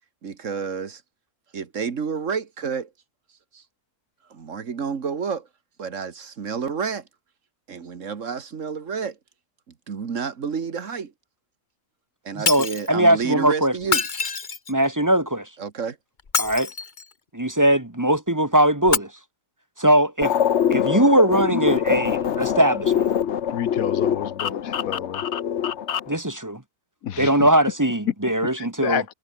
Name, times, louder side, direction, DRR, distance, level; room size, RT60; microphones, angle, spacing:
voice 1, 0.2-1.0 1.5-2.9 3.5-3.6 4.3-5.5 5.8-7.1 7.7-9.2 9.7-11.1 12.2-14.0 15.6-16.0, right 6 dB, 60° right, 1.8 m, -29 dB
voice 2, 12.3-13.7 14.7-15.5 16.4-16.7 17.3-19.1 19.8-20.3 20.7-23.1 26.1-26.6 27.2-29.0, right 1 dB, 15° right, 1.5 m, -20 dB
Shatter, 12.5-12.9 13.8-14.8 16.2-17.1 18.8-19.0, left 5 dB, 35° left, 1.3 m, -25 dB
sound 1, 20.2-26.2, left 9 dB, 55° left, 1.1 m, -24 dB
voice 3, 23.5-25.2 27.0-27.3 28.6-29.0, left 10 dB, 70° left, 1.4 m, -29 dB
omnidirectional pair, 1.6 m